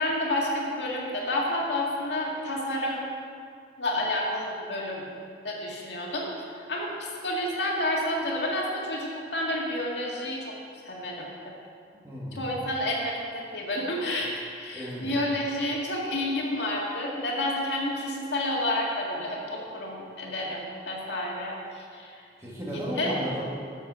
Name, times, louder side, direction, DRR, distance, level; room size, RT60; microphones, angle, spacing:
voice 1, 0.0-3.0 3.8-5.0 5.4-10.5 10.8-11.5 12.4-22.2 22.7-23.1, left 1 dB, 80° left, -3 dB, 1.9 m, -30 dB
voice 2, 11.9-12.4 14.7-15.2 22.4-23.4, equal, 15° right, -6 dB, 2.0 m, -34 dB
11.5 x 7.2 x 5.0 m, 2.3 s
head